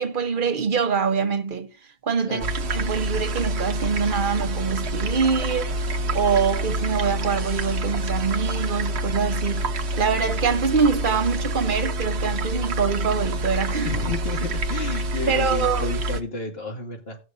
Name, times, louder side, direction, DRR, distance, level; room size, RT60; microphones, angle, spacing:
voice 1, 0.0-1.7 2.0-5.7 6.1-13.9 15.3-15.9, right 5 dB, 55° right, 1.2 m, -24 dB
sound 1, 2.4-16.2, right 1 dB, 85° right, 1.1 m, -27 dB
sound 2, 2.5-13.4, left 2 dB, 45° left, 4.4 m, -46 dB
voice 2, 13.8-17.2, left 3 dB, 70° left, 2.3 m, -31 dB
18.0 x 6.5 x 2.6 m
omnidirectional pair, 1.1 m